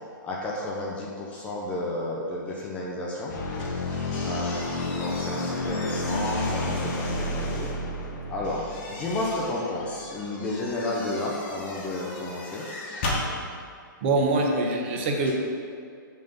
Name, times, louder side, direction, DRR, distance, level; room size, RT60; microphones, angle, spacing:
voice 1, 0.2-7.7 8.3-12.7, left 2 dB, 10° left, -3 dB, 0.4 m, -32 dB
sound 1, 3.3-10.0, left 2 dB, 60° left, 0.8 m, -31 dB
sound 2, 3.5-7.7 8.4-13.3, left 2 dB, 35° left, 1.0 m, -38 dB
voice 2, 14.0-15.3, right 2 dB, 35° right, 1 dB, 0.7 m, -24 dB
5.7 x 3.6 x 5.2 m, 2.3 s
hypercardioid pair, 165°, 11 cm